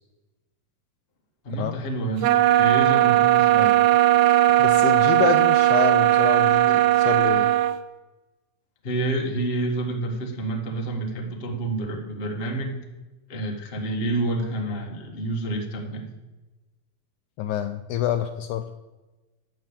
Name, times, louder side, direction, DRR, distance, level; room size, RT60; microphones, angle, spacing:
voice 1, 1.4-2.3 2.6-3.8 8.8-12.8 13.3-16.1, right 2 dB, 55° left, 1 dB, 0.6 m, -28 dB
sound 1, 2.2-7.8, right 14 dB, 85° right, 1.6 m, -18 dB
voice 2, 4.6-7.5 17.4-18.6, left 10 dB, 80° left, 8 dB, 1.8 m, -27 dB
10.5 x 6.7 x 7.3 m, 1.1 s
omnidirectional pair, 3.9 m